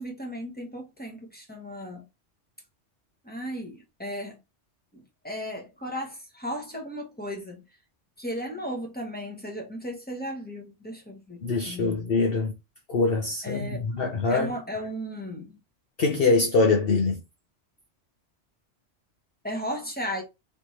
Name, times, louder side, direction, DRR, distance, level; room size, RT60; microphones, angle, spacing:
voice 1, 0.0-2.0 3.2-4.4 4.9-7.6 8.2-12.1 13.4-13.9 14.3-15.6 19.4-20.2, equal, 10° left, 1.1 m, -35 dB
voice 2, 11.4-12.5 12.9-14.5 16.0-17.2, left 3 dB, 60° left, 0.9 m, -23 dB
3.3 x 3.1 x 4.1 m
omnidirectional pair, 1.2 m